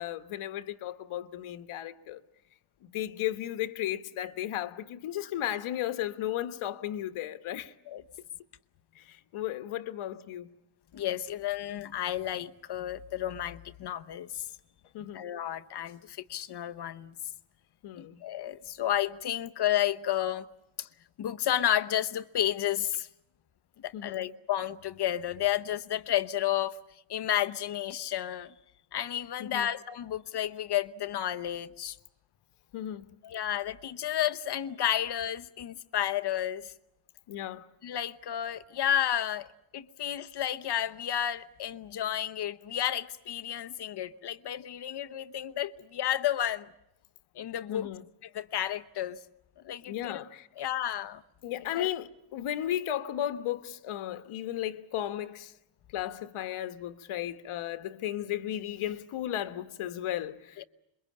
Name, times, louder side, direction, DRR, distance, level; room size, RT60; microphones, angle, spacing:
voice 1, 0.0-2.2 2.8-7.7 8.9-10.5 14.9-15.3 17.8-18.2 23.9-24.3 29.4-29.7 32.7-33.1 37.3-37.7 47.7-48.0 49.8-50.5 51.4-55.5 55.9-60.6, left 12 dB, 85° left, 1.4 m, -35 dB
voice 2, 10.9-14.4 15.1-17.1 18.0-20.5 20.8-20.9 21.2-23.1 23.8-26.8 27.1-28.5 28.9-32.0 33.2-36.7 37.8-39.5 39.7-46.7 47.3-47.9 48.2-49.2 49.6-50.2 50.6-51.2 51.7-51.9 60.6-60.7, left 11 dB, 55° left, 1.0 m, -31 dB
27.0 x 23.0 x 8.5 m
cardioid pair, 135°, 48 cm